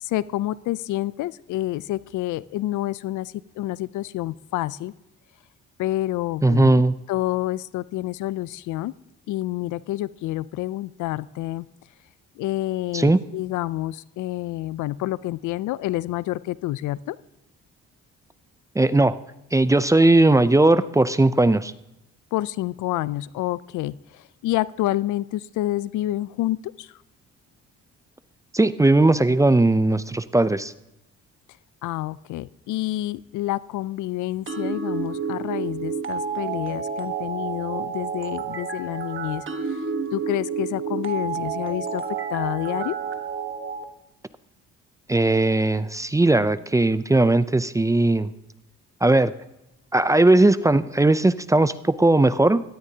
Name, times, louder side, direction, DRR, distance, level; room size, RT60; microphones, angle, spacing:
voice 1, 0.0-4.9 5.8-6.8 7.1-8.9 9.3-11.7 12.4-17.2 22.3-26.9 31.8-39.8 40.1-42.0 42.3-43.0, left 15 dB, 80° left, 19 dB, 0.4 m, -28 dB
voice 2, 6.4-6.9 12.9-13.2 18.8-19.1 19.5-21.7 28.5-30.7 45.1-48.3 49.0-49.3 49.9-52.6, right 2 dB, 10° right, 14 dB, 0.4 m, -18 dB
sound 1, 34.5-43.8, right 5 dB, 40° right, 1.3 m, -30 dB
17.5 x 13.0 x 2.8 m, 0.92 s
cardioid pair, 90°, 30 cm